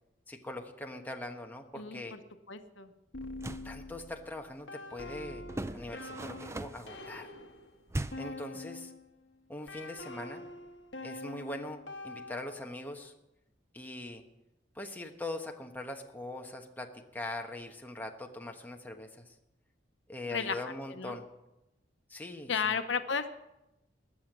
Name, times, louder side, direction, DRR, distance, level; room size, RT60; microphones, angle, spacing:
voice 1, 0.3-2.1 3.6-5.4 5.7-7.3 8.2-8.9 9.5-10.4 11.0-13.1 13.7-14.2 14.7-16.9 17.1-19.3 20.1-21.2 22.1-22.7, left 2 dB, 10° left, 2 dB, 1.1 m, -41 dB
voice 2, 1.8-2.2 2.5-2.9 20.3-21.2 22.5-23.3, left 6 dB, 85° left, 9 dB, 0.9 m, -34 dB
sound 1, 3.1-9.1 9.7-12.9, left 2 dB, 65° left, 1.3 m, -45 dB
sound 2, 3.2-3.7 5.5-7.0 7.9-8.4, right 1 dB, 15° right, 0.4 m, -39 dB
21.0 x 7.2 x 6.1 m, 0.94 s
head